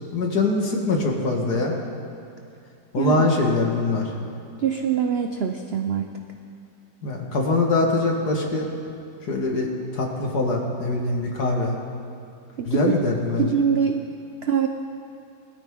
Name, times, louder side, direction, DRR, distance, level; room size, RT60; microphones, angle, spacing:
voice 1, 0.1-1.8 2.9-4.1 7.0-8.7 9.3-11.7 12.7-13.5, left 2 dB, 60° left, 0 dB, 2.3 m, -23 dB
voice 2, 3.0-3.3 4.6-6.1 12.6-12.8 13.4-14.0 14.4-14.7, right 7 dB, 75° right, 5 dB, 0.5 m, -23 dB
20.5 x 13.5 x 3.7 m, 2.5 s
omnidirectional pair, 2.0 m